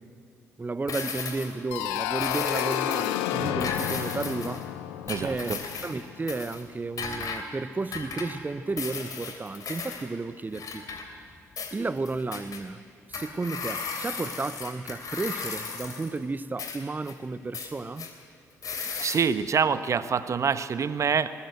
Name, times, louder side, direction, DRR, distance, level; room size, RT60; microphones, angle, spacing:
voice 1, 0.6-4.7 5.2-5.6 5.8-10.9 11.7-12.8 13.1-18.1, right 3 dB, 25° right, 0.9 m, -33 dB
sound 1, 0.9-1.6 2.2-3.2 3.6-4.6 5.1-6.0 6.3-6.6 7.0-7.4 7.9-8.4 8.8-10.1 10.5-11.3 11.6-12.6 13.1-16.2 16.6-17.1 17.5-18.1 18.6-19.2, left 5 dB, 50° left, 2.9 m, -36 dB
sound 2, 1.7-6.4, left 12 dB, 70° left, 0.8 m, -31 dB
voice 2, 5.1-5.6 19.0-21.3, right 6 dB, 40° right, 1.1 m, -26 dB
20.5 x 19.5 x 8.0 m
figure-of-eight pair, 45°, 8 cm